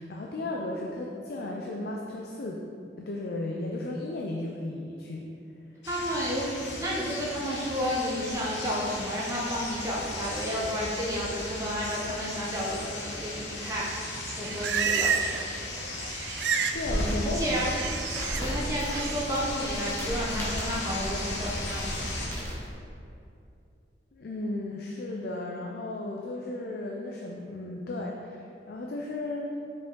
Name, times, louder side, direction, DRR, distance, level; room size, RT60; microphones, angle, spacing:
voice 1, 0.0-2.6 3.0-5.3 16.7-17.6 24.1-29.5, left 2 dB, 60° left, 0 dB, 0.5 m, -34 dB
sound 1, 5.8-22.3, left 2 dB, 85° left, 1.2 m, -37 dB
voice 2, 5.9-6.5 6.7-15.4 17.3-17.7 18.4-21.9 22.2-22.5, equal, 15° right, -6 dB, 0.9 m, -32 dB
Livestock farm animals working animals, 14.1-15.5 15.8-16.8 17.1-18.4 18.9-19.3, right 7 dB, 65° right, 0.3 m, -30 dB
sound 2, 16.7-22.7, equal, 15° left, 1.4 m, -35 dB
5.9 x 5.1 x 3.8 m, 2.6 s
head